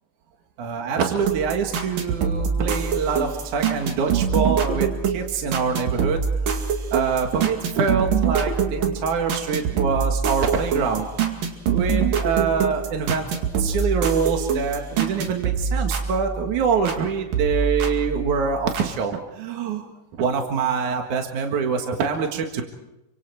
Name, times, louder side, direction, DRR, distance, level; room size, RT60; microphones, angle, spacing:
voice 1, 0.6-6.2 6.9-11.1 11.7-19.8 20.2-22.6, right 6 dB, 65° right, 3 dB, 3.1 m, -25 dB
sound 1, 1.2-17.0 17.3-18.9, right 6 dB, 85° right, 3.9 m, -25 dB
29.0 x 25.0 x 4.7 m, 0.94 s
omnidirectional pair, 3.8 m